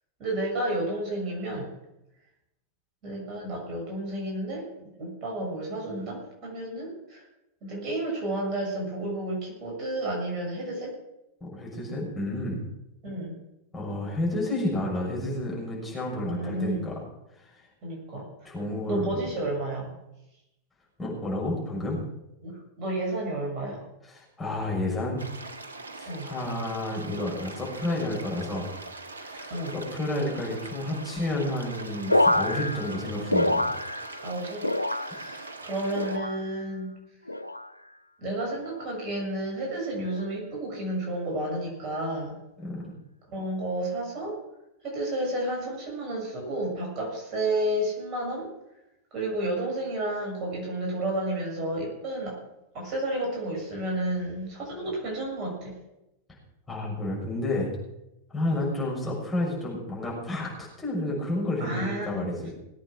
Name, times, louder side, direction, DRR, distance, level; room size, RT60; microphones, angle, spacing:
voice 1, 0.2-1.7 3.0-4.6 5.0-7.2 7.6-10.9 13.0-13.4 16.3-16.8 17.8-18.3 18.9-19.9 22.4-23.8 26.1-26.3 29.5-29.8 34.2-34.6 34.9-36.9 38.2-42.4 43.3-44.4 44.8-48.5 49.1-52.4 52.7-55.7 58.5-58.7 61.6-62.2, right 1 dB, 40° right, -1 dB, 7.0 m, -31 dB
voice 2, 11.4-12.6 13.7-17.0 17.3-17.4 18.4-19.1 21.0-22.0 24.1-25.2 26.0-28.7 29.2-33.7 42.6-42.8 56.7-57.7 58.3-62.5, left 1 dB, 10° left, -4 dB, 6.5 m, -30 dB
sound 1, 25.2-36.2, right 3 dB, 75° right, 1.4 m, -42 dB
sound 2, 32.1-34.3 34.6-35.5 35.9-36.6 37.3-37.7 38.6-39.0 39.9-40.2, left 1 dB, 85° left, 0.5 m, -27 dB
19.5 x 8.8 x 6.2 m, 0.88 s
figure-of-eight pair, 90°, 0 cm